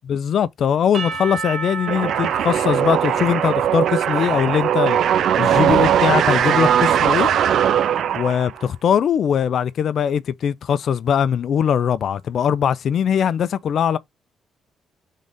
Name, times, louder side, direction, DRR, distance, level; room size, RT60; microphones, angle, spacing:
voice 1, 0.1-5.0 5.4-7.3 8.2-14.0, left 8 dB, 60° left, 0.5 m, -21 dB
Percussion / Church bell, 0.9-5.1, right 4 dB, 50° right, 1.4 m, -33 dB
sound 1, 1.9-8.6, right 9 dB, 70° right, 0.5 m, -19 dB
3.8 x 3.5 x 3.9 m
cardioid pair, 90°, 0 cm